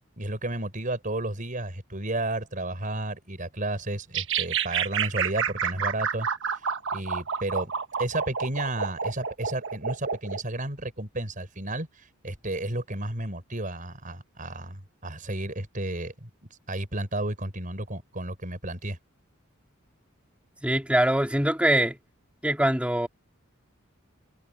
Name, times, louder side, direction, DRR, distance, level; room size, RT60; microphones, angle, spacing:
voice 1, 0.2-6.3 6.9-7.7 8.0-11.9 12.2-16.3 16.7-19.0, right 1 dB, 40° right, 5.6 m, -32 dB
sound 1, 4.1-10.4, right 7 dB, 60° right, 1.4 m, -29 dB
voice 2, 20.6-22.0 22.4-23.1, right 1 dB, 5° right, 4.0 m, -23 dB
head